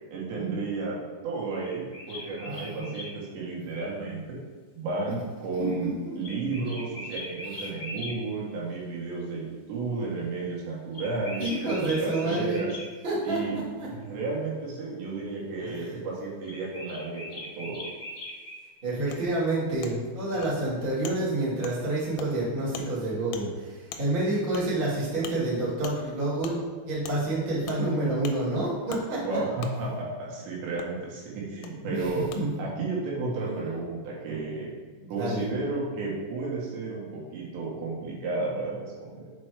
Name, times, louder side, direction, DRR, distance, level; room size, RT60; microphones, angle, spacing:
voice 1, 0.1-1.0 1.2-4.4 4.8-11.7 12.0-12.7 13.2-13.6 13.9-17.9 29.2-32.3 32.6-34.7 35.1-39.3, right 3 dB, 80° right, -4 dB, 3.8 m, -32 dB
sound 1, 1.6-3.1 6.2-8.2 10.9-12.9 16.4-18.6, left 1 dB, 45° left, 1.2 m, -40 dB
voice 2, 2.4-2.9 5.6-6.2 7.9-8.0 11.4-12.6 13.0-13.4 13.8-13.9 15.6-16.0 18.8-26.6 26.8-29.4 30.5-30.6 31.5-32.1 32.3-32.5 34.3-34.4 35.0-35.4, right 2 dB, 35° right, -8 dB, 0.8 m, -29 dB
Wood, 19.1-19.2 19.8-19.9 20.4-20.5 21.0-21.2 21.6-21.8 22.2-22.3 22.7-22.9 23.3-23.4 23.9-24.0 24.5-24.7 25.2-25.4 25.8-26.0 26.4-26.6 27.0-27.2 27.7-27.8 28.2-28.4 28.9-29.0 29.6-29.7 30.8-30.9 31.6-31.7 32.3-32.4, left 8 dB, 80° left, 2.3 m, -39 dB
7.4 x 4.4 x 4.8 m, 1.5 s
omnidirectional pair, 5.1 m